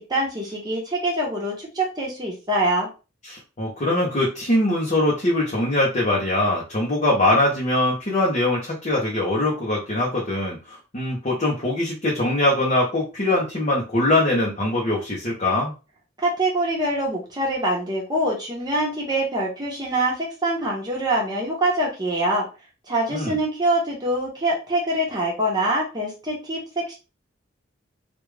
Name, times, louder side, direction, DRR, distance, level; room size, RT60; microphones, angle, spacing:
voice 1, 0.0-2.9 16.2-22.5 22.9-26.6 26.9-27.0, right 1 dB, 20° right, -3 dB, 1.0 m, -24 dB
voice 2, 3.2-15.7 23.1-23.4, left 1 dB, 40° left, -3 dB, 0.9 m, -22 dB
3.4 x 2.5 x 3.3 m, 0.30 s
head